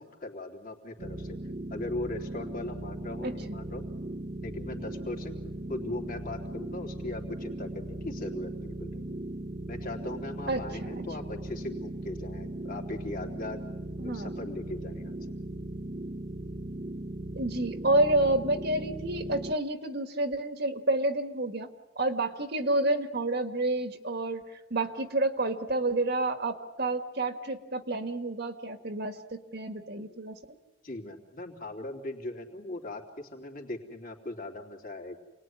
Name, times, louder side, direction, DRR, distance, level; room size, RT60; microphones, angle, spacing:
voice 1, 0.0-1.4 1.7-3.8 4.4-5.4 5.7-9.1 9.7-13.6 14.0-15.2 30.8-35.2, left 2 dB, 45° left, 2 dB, 3.4 m, -39 dB
sound 1, 1.0-19.5, right 1 dB, 40° right, 1.0 m, -38 dB
voice 2, 3.2-3.6 10.5-11.0 14.0-14.3 17.4-21.7 22.0-30.4, right 2 dB, 55° right, 8 dB, 1.7 m, -29 dB
28.5 x 20.0 x 9.7 m, 1.1 s
head